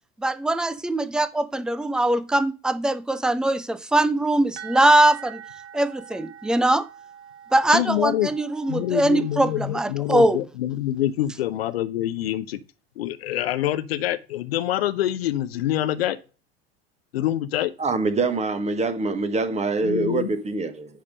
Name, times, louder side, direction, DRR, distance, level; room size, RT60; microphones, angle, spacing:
voice 1, 0.2-5.4 5.7-6.9 7.5-10.4, right 1 dB, ahead, 0.5 m, -21 dB
sound 1, 4.6-10.2, right 9 dB, 65° right, 1.3 m, -44 dB
voice 2, 7.7-8.3 8.7-12.6 13.0-16.2 17.1-17.7 19.8-20.3, left 13 dB, 70° left, 0.8 m, -26 dB
voice 3, 17.8-20.7, right 3 dB, 20° right, 1.3 m, -24 dB
10.0 x 3.6 x 6.3 m
figure-of-eight pair, 80°, 31 cm